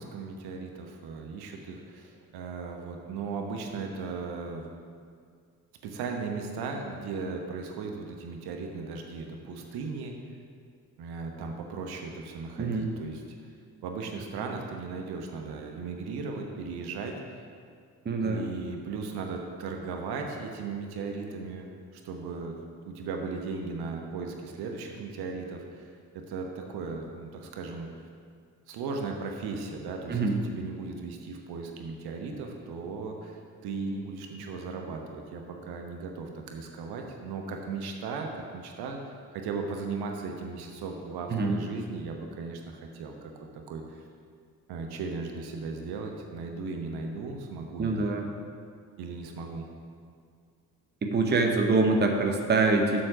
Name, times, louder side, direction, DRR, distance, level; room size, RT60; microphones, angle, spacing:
voice 1, 0.0-4.7 5.8-10.1 11.0-13.2 13.8-17.4 18.2-22.5 22.9-27.9 28.7-39.0 39.3-43.3 43.7-44.0 44.7-48.0 49.0-49.7, right 4 dB, 55° right, 2 dB, 1.1 m, -37 dB
voice 2, 18.0-18.5 30.1-30.4 41.3-41.6 47.8-48.2 51.0-53.0, right 3 dB, 20° right, 3 dB, 1.0 m, -25 dB
7.6 x 6.3 x 5.9 m, 2.2 s
figure-of-eight pair, 45°, 46 cm